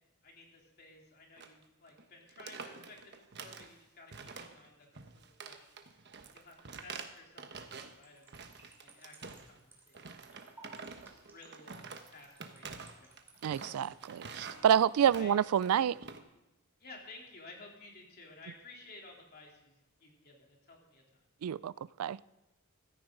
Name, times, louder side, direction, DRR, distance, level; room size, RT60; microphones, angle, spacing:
voice 1, 0.2-5.8 6.3-8.5 8.8-10.2 10.4-10.6 11.3-13.2 15.2-15.4 16.8-21.0, left 3 dB, 45° left, 3.3 m, -55 dB
sound 1, 1.4-1.6 1.9-2.0 2.3-3.7 4.1-4.7 4.9-8.0 8.3-9.6 9.9-16.2, right 5 dB, 50° right, 1.1 m, -48 dB
sound 2, 7.9-15.1, right 2 dB, 10° right, 2.8 m, -60 dB
voice 2, 13.4-16.0 21.4-21.7 22.0-22.2, right 9 dB, 85° right, 0.3 m, -28 dB
15.5 x 13.5 x 3.9 m
head